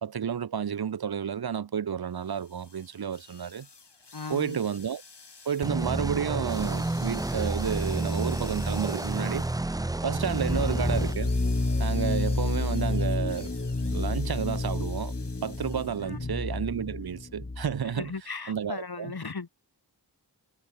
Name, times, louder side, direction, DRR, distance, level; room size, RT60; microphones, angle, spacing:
voice 1, 0.0-3.7 4.3-5.0 5.4-9.5 10.0-11.3 11.8-13.5 13.8-15.1 15.4-18.1 18.5-19.1, right 8 dB, 65° right, 0.6 m, -31 dB
sound 1, 2.2-16.1, left 4 dB, 85° left, 3.8 m, -50 dB
voice 2, 4.1-4.6 10.6-10.7 16.0-16.3 17.9-19.5, left 4 dB, 65° left, 1.8 m, -37 dB
sound 2, 5.6-11.1, right 2 dB, 10° right, 0.4 m, -30 dB
sound 3, 10.2-17.9, left 2 dB, 30° left, 1.5 m, -30 dB
wide cardioid pair, 45°, 40 cm